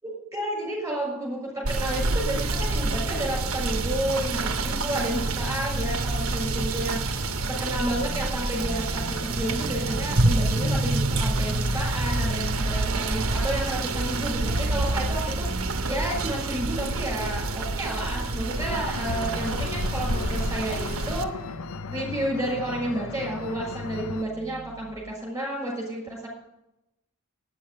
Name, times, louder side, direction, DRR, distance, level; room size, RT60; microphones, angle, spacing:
voice 1, 0.0-7.2 7.5-21.5 21.9-26.3, right 1 dB, 15° right, -2 dB, 6.4 m, -31 dB
Rain / Motor vehicle (road), 1.6-21.2, right 2 dB, 70° right, 1.1 m, -27 dB
sound 1, 18.5-24.2, left 6 dB, 70° left, 0.5 m, -36 dB
sound 2, 19.2-24.9, right 2 dB, 90° left, 4.8 m, -43 dB
9.8 x 8.6 x 9.3 m, 0.89 s
head